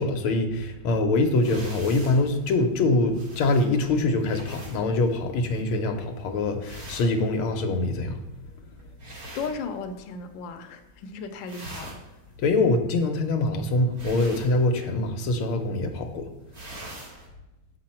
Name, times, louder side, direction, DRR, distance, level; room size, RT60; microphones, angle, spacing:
voice 1, 0.0-8.2 12.4-16.3, left 2 dB, 90° left, 5 dB, 1.6 m, -24 dB
sound 1, 1.4-10.3 10.6-11.0 11.3-17.3, right 1 dB, 45° right, 1.8 m, -45 dB
voice 2, 9.3-12.2, left 4 dB, 70° left, 5 dB, 1.3 m, -36 dB
6.9 x 5.8 x 4.3 m, 0.97 s
omnidirectional pair, 2.3 m